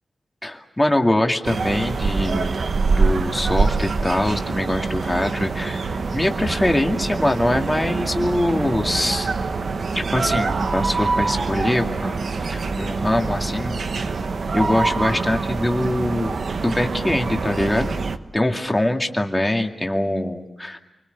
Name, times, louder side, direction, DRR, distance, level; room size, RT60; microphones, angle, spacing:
voice 1, 0.4-2.6 3.0-5.9 6.1-9.3 9.9-12.2 12.5-14.1 14.5-16.4 16.6-18.0 18.3-20.8, left 1 dB, 10° left, 3 dB, 2.2 m, -23 dB
sound 1, 1.4-18.2, right 4 dB, 60° right, 1.2 m, -25 dB
30.0 x 24.0 x 6.8 m, 0.95 s
wide cardioid pair, 165°, 0 cm